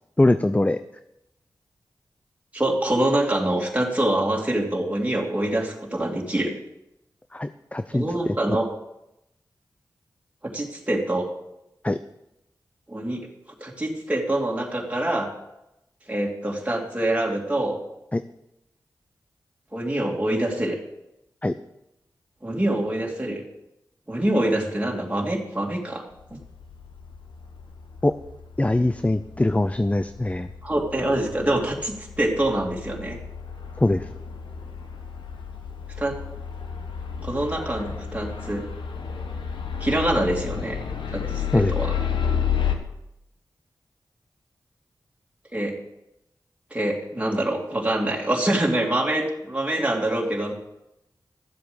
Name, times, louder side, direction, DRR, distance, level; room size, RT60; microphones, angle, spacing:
voice 1, 0.2-0.8 7.3-8.4 11.8-12.0 18.1-18.2 21.4-21.5 28.0-28.1 28.6-30.5 33.8-34.1 41.5-41.7, left 2 dB, 15° left, 11 dB, 0.6 m, -22 dB
voice 2, 2.5-6.5 7.9-8.7 10.4-11.2 12.9-13.3 13.6-15.3 16.1-17.8 19.7-20.8 22.4-23.4 24.1-26.0 26.3-26.4 30.6-33.2 36.0-36.2 37.2-38.6 39.8-40.8 41.1-41.9 45.5-45.7 46.7-50.5, right 1 dB, 15° right, -1 dB, 2.8 m, -25 dB
sound 1, 26.2-42.8, left 7 dB, 85° left, 1.3 m, -32 dB
13.0 x 7.7 x 7.0 m, 0.87 s
cardioid pair, 55°, 8 cm